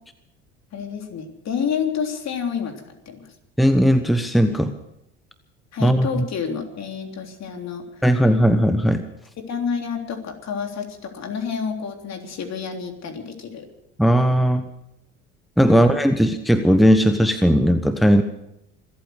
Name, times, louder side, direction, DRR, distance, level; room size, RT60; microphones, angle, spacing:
voice 1, 0.7-3.2 5.7-8.0 9.4-13.7 15.7-15.9, left 6 dB, 50° left, 4 dB, 3.5 m, -29 dB
voice 2, 3.6-4.8 5.8-6.2 8.0-9.0 14.0-14.7 15.6-18.2, equal, ahead, 9 dB, 1.1 m, -17 dB
26.0 x 8.7 x 6.4 m, 0.82 s
hypercardioid pair, 70°, 35 cm